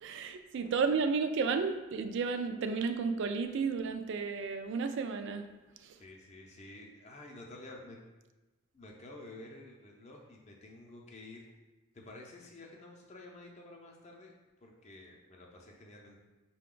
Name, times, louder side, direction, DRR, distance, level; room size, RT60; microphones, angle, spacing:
voice 1, 0.0-5.5 5.8-6.0, right 5 dB, 55° right, 0.3 m, -32 dB
voice 2, 6.0-8.0 8.7-11.4 11.9-14.3 14.6-16.2, left 2 dB, 30° left, 0.6 m, -50 dB
5.7 x 2.2 x 3.7 m
head